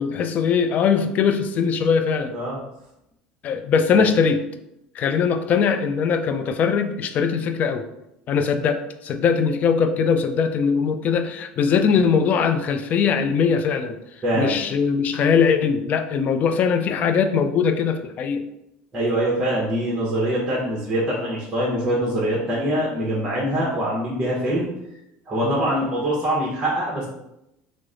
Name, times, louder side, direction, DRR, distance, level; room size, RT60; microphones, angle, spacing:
voice 1, 0.0-2.3 3.4-4.4 4.9-7.9 8.3-14.0 14.4-18.4 20.6-20.7 23.5-23.7 25.4-25.6, left 6 dB, 40° left, 8 dB, 0.3 m, -21 dB
voice 2, 14.2-14.6 18.9-24.7 25.3-27.1, right 1 dB, 20° right, -6 dB, 0.9 m, -23 dB
3.1 x 2.0 x 3.6 m, 0.85 s
supercardioid pair, 115°, 4 cm